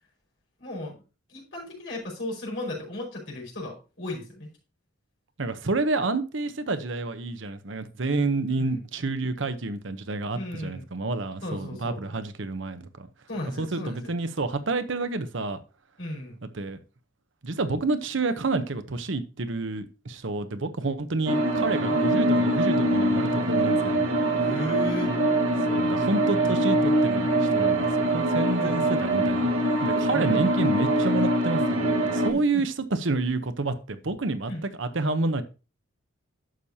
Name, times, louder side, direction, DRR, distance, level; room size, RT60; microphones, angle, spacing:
voice 1, 0.6-1.0 1.3-4.5 8.6-8.8 10.3-10.8 11.4-12.0 13.3-14.1 16.0-16.4 21.9-22.0 24.4-25.1 28.6-28.9 30.1-30.7 32.3-32.6 34.5-34.6, left 1 dB, 60° left, 5.2 m, -35 dB
voice 2, 5.4-13.1 13.6-15.6 16.5-16.8 17.4-24.1 25.7-29.5 29.8-34.5 34.8-35.4, right 3 dB, 65° right, 0.9 m, -29 dB
sound 1, 21.3-32.3, right 1 dB, 85° right, 1.4 m, -23 dB
11.0 x 7.2 x 2.8 m
head